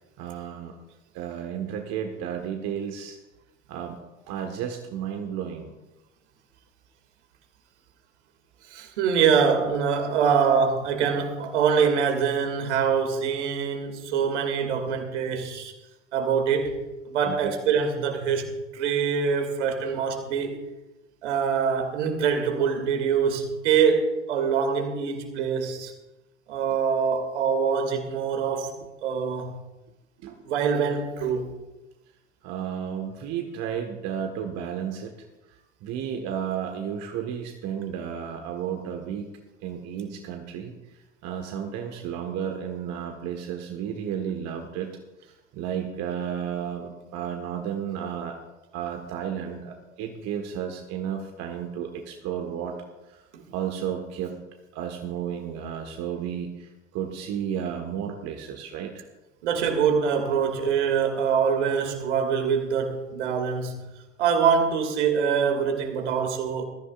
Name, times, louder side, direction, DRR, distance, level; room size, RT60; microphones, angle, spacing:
voice 1, 0.2-0.7 1.1-3.2 3.7-4.0 4.3-5.7 17.2-17.5 30.2-30.3 32.4-35.1 35.8-40.7 41.2-44.9 45.2-48.3 48.7-52.8 53.5-54.3 54.7-59.0, right 8 dB, 45° right, 1.6 m, -32 dB
voice 2, 8.7-15.7 16.1-16.7 17.1-20.6 21.2-25.9 26.5-28.7 29.0-29.6 30.4-31.5 53.3-53.4 59.4-63.9 64.2-66.6, right 6 dB, 65° right, 2.5 m, -24 dB
21.0 x 14.5 x 2.5 m
figure-of-eight pair, 75°, 37 cm